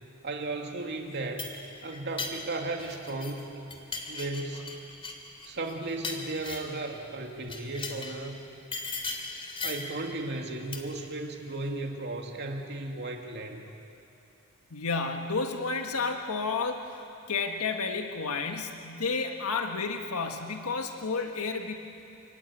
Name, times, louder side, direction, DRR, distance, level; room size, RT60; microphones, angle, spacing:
voice 1, 0.2-1.5 1.8-3.5 4.1-4.8 5.4-8.5 9.6-13.7, right 2 dB, 50° right, 2 dB, 2.5 m, -35 dB
sound 1, 1.1-3.4 3.7-6.8 7.4-8.2 8.7-10.0 10.7-11.1, left 3 dB, 25° left, 3.0 m, -38 dB
voice 2, 14.7-16.9 17.3-21.8, left 4 dB, 80° left, 4 dB, 1.6 m, -31 dB
28.0 x 20.5 x 8.6 m, 2.8 s
head